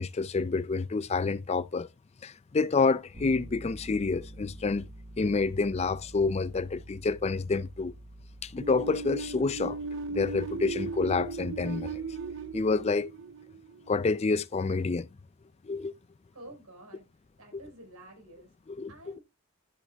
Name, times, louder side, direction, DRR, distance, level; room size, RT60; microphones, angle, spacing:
voice 1, 0.0-1.9 2.2-4.9 5.2-7.9 8.4-9.8 10.1-12.0 12.5-13.1 13.9-15.1 15.6-15.9 17.5-17.6 18.7-18.9, left 4 dB, 30° left, 0.4 m, -28 dB
Bass guitar, 3.1-13.0, right 1 dB, 30° right, 1.9 m, -48 dB
sound 1, 8.6-14.2, right 4 dB, 55° right, 0.5 m, -37 dB
voice 2, 16.3-17.1 17.4-18.5 18.9-19.2, right 1 dB, 85° right, 4.6 m, -49 dB
12.5 x 7.7 x 2.3 m
head